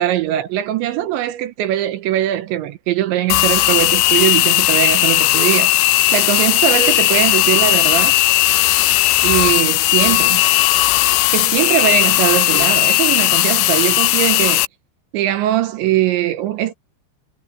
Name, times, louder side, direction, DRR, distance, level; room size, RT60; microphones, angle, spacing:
voice 1, 0.0-8.2 9.2-10.5 11.3-14.6 15.1-16.7, right 13 dB, 75° right, 3.4 m, -20 dB
sound 1, 3.3-14.7, left 18 dB, 85° left, 2.4 m, -16 dB
omnidirectional pair, 5.4 m